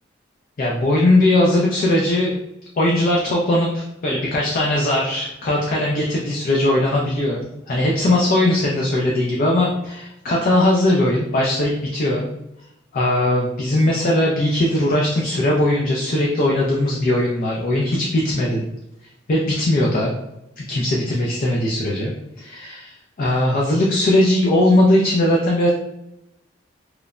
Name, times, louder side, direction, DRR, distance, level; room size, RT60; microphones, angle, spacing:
voice 1, 0.6-2.4 2.8-12.2 12.9-18.6 19.3-20.2 20.6-25.7, left 1 dB, 50° left, -2 dB, 0.4 m, -19 dB
3.1 x 2.0 x 2.4 m, 0.85 s
head